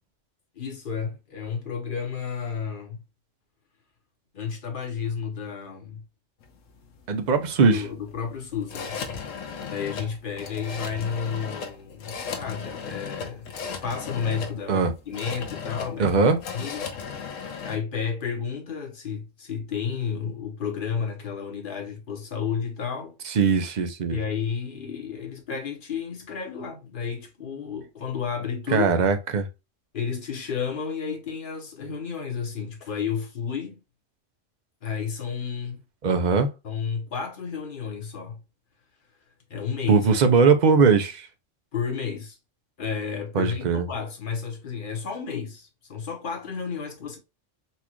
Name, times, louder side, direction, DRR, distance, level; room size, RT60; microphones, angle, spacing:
voice 1, 0.5-3.0 4.3-6.0 7.7-9.0 9.6-13.5 13.8-16.1 16.5-16.9 17.6-23.2 24.1-29.0 29.9-33.8 34.8-35.8 36.6-38.4 39.5-40.1 41.7-42.4 42.8-47.2, left 6 dB, 45° left, 1.1 m, -32 dB
sound 1, 6.4-17.8, left 6 dB, 90° left, 1.2 m, -36 dB
voice 2, 7.1-7.8 14.7-14.9 16.0-16.4 23.3-24.2 28.7-29.5 36.0-36.5 39.9-41.3 43.3-43.9, right 5 dB, 50° right, 0.6 m, -20 dB
4.2 x 2.4 x 2.9 m
omnidirectional pair, 1.3 m